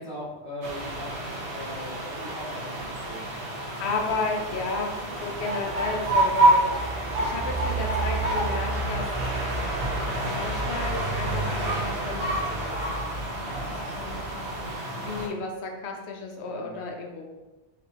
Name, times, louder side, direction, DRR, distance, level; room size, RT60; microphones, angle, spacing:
voice 1, 0.0-3.4 4.0-4.7 13.4-13.8 16.5-16.8, equal, 30° left, -11 dB, 1.0 m, -41 dB
sound 1, 0.6-15.3, right 1 dB, 60° right, 1.0 m, -28 dB
voice 2, 3.8-6.7 7.2-9.1 10.2-13.0 13.9-14.2 15.0-17.2, left 3 dB, 75° left, 2 dB, 0.9 m, -33 dB
4.4 x 3.3 x 2.5 m, 1.1 s
omnidirectional pair, 1.2 m